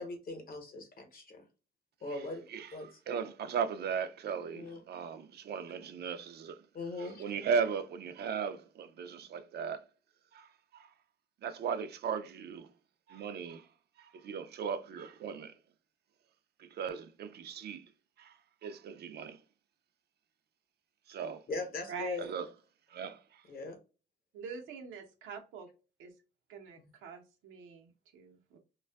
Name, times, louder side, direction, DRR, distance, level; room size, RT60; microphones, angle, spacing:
voice 1, 0.0-1.4 2.0-2.4 2.7-3.0 4.5-4.8 6.7-7.2 21.5-22.3 23.5-23.8 26.8-26.9, left 3 dB, 50° left, 0.8 m, -40 dB
voice 2, 3.1-6.6 7.0-9.8 10.3-10.9 11.4-12.7 13.1-13.7 14.0-15.5 16.6-17.9 18.2-19.4 21.1-21.4 22.2-22.5 22.9-23.4, right 6 dB, 55° right, 0.4 m, -37 dB
voice 3, 21.9-22.2 24.3-25.7 26.0-26.1 26.5-28.6, right 6 dB, 90° right, 0.7 m, -45 dB
2.5 x 2.3 x 2.2 m
cardioid pair, 90°, 20 cm